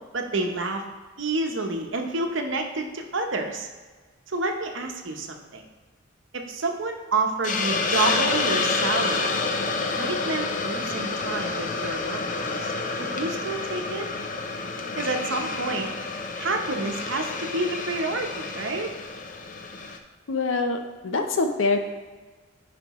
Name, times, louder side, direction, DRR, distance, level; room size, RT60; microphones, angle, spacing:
voice 1, 0.1-0.8 1.2-3.7 4.3-5.7 6.3-9.3 10.0-12.7 13.0-14.1 14.9-15.9 16.4-18.9, right 2 dB, 70° right, 4 dB, 0.8 m, -29 dB
Hiss, 7.4-20.0, left 3 dB, 40° left, 0.6 m, -29 dB
voice 2, 20.3-20.8 21.0-21.8, left 3 dB, 75° left, 6 dB, 0.7 m, -24 dB
9.3 x 5.1 x 3.0 m, 1.3 s
head